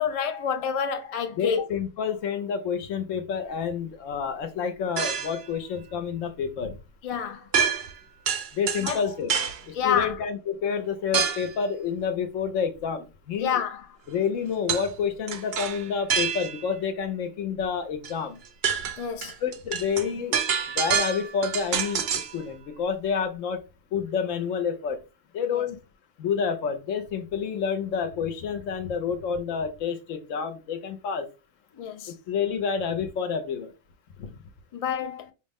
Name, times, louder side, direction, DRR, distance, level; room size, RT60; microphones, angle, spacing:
voice 1, 0.0-1.6 7.0-7.5 8.8-9.0 9.7-10.2 13.4-13.9 19.0-19.3 25.5-25.6 31.8-32.1 34.7-35.3, left 8 dB, 55° left, 0.4 m, -28 dB
voice 2, 1.3-6.8 8.5-9.3 9.6-13.6 14.1-18.4 19.4-20.4 20.7-23.6 23.9-25.0 25.3-25.8 26.2-31.3 32.1-33.7 34.2-34.3, left 6 dB, 75° left, 1.0 m, -29 dB
sound 1, 5.0-5.5 7.5-8.0 8.3-9.6 11.1-11.5 14.7-14.9 15.3-16.7 18.0-18.1 18.5-22.4, right 7 dB, 60° right, 0.7 m, -27 dB
4.9 x 2.1 x 3.4 m
omnidirectional pair, 1.4 m